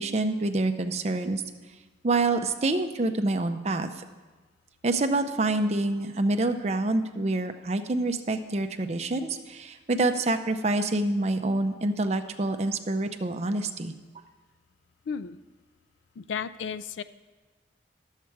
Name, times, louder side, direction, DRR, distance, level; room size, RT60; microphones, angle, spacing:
voice 1, 0.0-1.4 2.0-3.9 4.8-13.9, right 2 dB, 35° right, 7 dB, 0.5 m, -27 dB
voice 2, 15.1-15.4 16.2-17.0, left 6 dB, 85° left, 14 dB, 0.4 m, -33 dB
10.5 x 7.4 x 4.6 m, 1.3 s
head